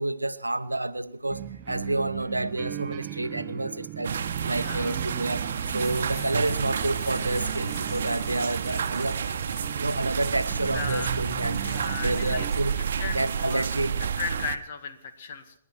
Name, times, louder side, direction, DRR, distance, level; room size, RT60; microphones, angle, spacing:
voice 1, 0.0-9.4 9.8-11.6 12.0-12.7 13.1-13.9, right 2 dB, 85° right, 13 dB, 0.8 m, -29 dB
sound 1, 1.3-12.5, right 14 dB, 35° right, 0.7 m, -38 dB
sound 2, 4.0-14.6, right 7 dB, 60° right, 1.0 m, -30 dB
voice 2, 4.5-5.0 10.7-11.2 11.6-12.5 13.0-13.7 14.2-15.5, left 5 dB, 50° left, 9 dB, 2.0 m, -35 dB
sound 3, 5.5-13.7, left 4 dB, 25° left, 2.1 m, -47 dB
27.5 x 11.0 x 4.6 m, 0.71 s
figure-of-eight pair, 115°, 0 cm